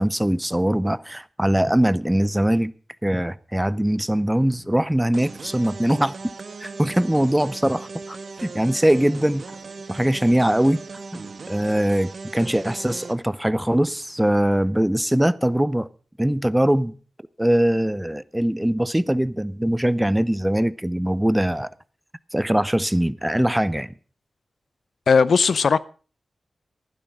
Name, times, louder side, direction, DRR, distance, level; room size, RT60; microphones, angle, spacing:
voice 1, 0.0-2.7 3.0-6.3 6.6-9.4 9.9-10.8 11.1-15.9 16.2-16.9 17.4-21.7 22.3-23.9, right 1 dB, 10° right, 0.6 m, -22 dB
sound 1, 5.1-13.1, right 4 dB, 65° right, 1.2 m, -38 dB
voice 2, 25.1-25.8, left 5 dB, 80° left, 0.5 m, -17 dB
15.0 x 11.5 x 5.1 m
wide cardioid pair, 90°, 0 cm